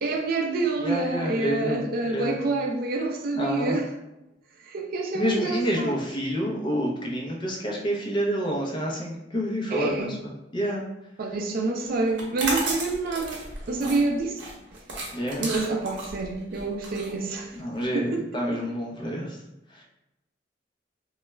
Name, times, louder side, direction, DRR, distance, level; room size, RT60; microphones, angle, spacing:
voice 1, 0.0-3.9 4.6-5.9 9.7-10.2 11.2-13.4 13.7-14.4 15.4-17.5 17.9-18.2 18.5-18.6, right 3 dB, 55° right, 0.4 m, -27 dB
voice 2, 0.8-2.4 3.3-3.8 5.1-10.9 15.1-15.5 17.6-19.4 19.7-19.8, equal, 25° left, 0.5 m, -28 dB
sound 1, 12.1-17.8, right 2 dB, 90° right, 0.7 m, -33 dB
2.2 x 2.1 x 3.1 m
head